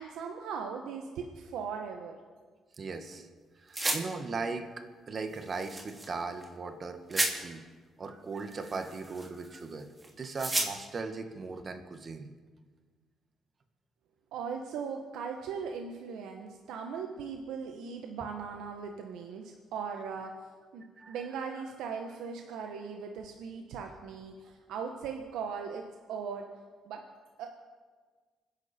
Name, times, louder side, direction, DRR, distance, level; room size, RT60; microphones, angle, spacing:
voice 1, 0.0-2.2 14.3-26.5 26.8-27.0 27.4-27.5, right 6 dB, 90° right, 3 dB, 1.2 m, -39 dB
voice 2, 2.8-3.3 3.6-7.6 8.0-9.9 10.2-12.3 21.0-21.1, right 4 dB, 45° right, 7 dB, 1.7 m, -38 dB
sound 1, 3.7-4.0 5.3-6.1 6.4-6.5 7.1-7.3 8.4-9.6 10.0-10.7, right 2 dB, 20° right, 2.9 m, -32 dB
25.5 x 10.5 x 4.4 m, 1.5 s
cardioid pair, 90°, 0 cm